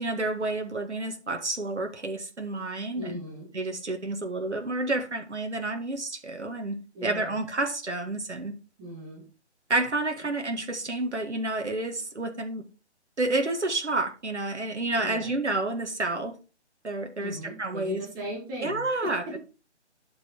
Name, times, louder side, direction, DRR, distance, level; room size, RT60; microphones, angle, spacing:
voice 1, 0.0-3.2 3.5-8.5 9.7-12.6 13.2-16.3 16.8-18.0 18.6-19.2, right 2 dB, 75° right, 5 dB, 1.9 m, -30 dB
voice 2, 2.9-3.5 6.9-7.3 8.8-9.3 14.9-15.3 17.2-19.4, equal, 15° right, -1 dB, 2.4 m, -38 dB
11.5 x 5.7 x 4.4 m, 0.33 s
figure-of-eight pair, 145°, 35 cm